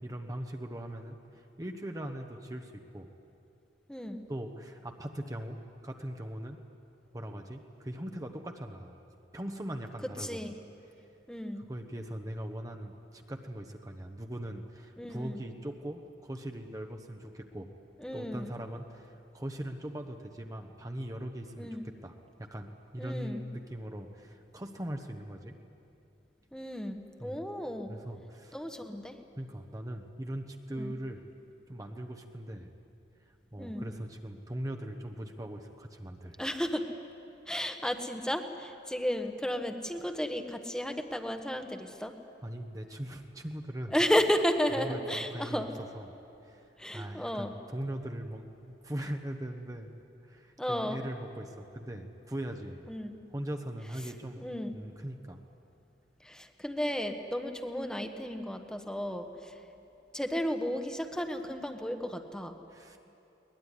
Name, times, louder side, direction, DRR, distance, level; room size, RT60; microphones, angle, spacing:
voice 1, 0.0-3.1 4.3-6.6 7.1-9.0 9.3-10.4 11.6-17.7 18.1-25.6 27.2-27.4 27.9-28.6 29.4-31.2 31.7-32.7 33.5-36.4 42.4-43.9 44.8-46.1 46.4-46.6 46.9-49.9 50.2-52.8 53.3-54.4 54.7-55.4 62.7-63.0, right 1 dB, 20° right, 4 dB, 1.1 m, -40 dB
voice 2, 3.9-4.2 10.2-10.6 11.3-11.7 15.0-15.4 18.0-18.5 21.6-21.9 23.0-23.5 26.5-27.9 28.5-29.2 30.8-30.9 33.6-33.9 36.2-36.8 37.5-42.1 43.9-45.7 46.8-47.5 50.6-51.0 52.9-53.1 54.4-54.7 56.2-59.6 60.1-62.6, equal, 5° left, 5 dB, 1.3 m, -33 dB
22.0 x 20.0 x 10.0 m, 2.8 s
head